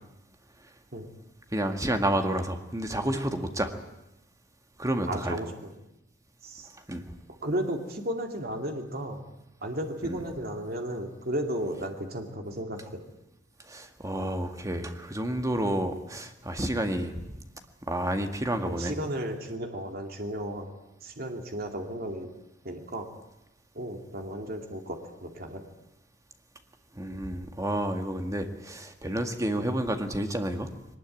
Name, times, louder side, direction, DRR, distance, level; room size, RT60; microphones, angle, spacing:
voice 1, 1.5-3.7 4.8-5.4 6.9-7.0 10.0-10.2 13.6-17.4 17.9-19.0 27.0-30.7, right 1 dB, 20° right, 6 dB, 1.9 m, -30 dB
voice 2, 5.1-5.7 6.4-6.7 7.4-9.2 9.6-13.0 18.6-20.7 21.0-22.3 22.6-23.1 23.7-25.6, right 1 dB, 55° right, 3 dB, 2.6 m, -34 dB
21.5 x 20.0 x 9.1 m, 0.87 s
head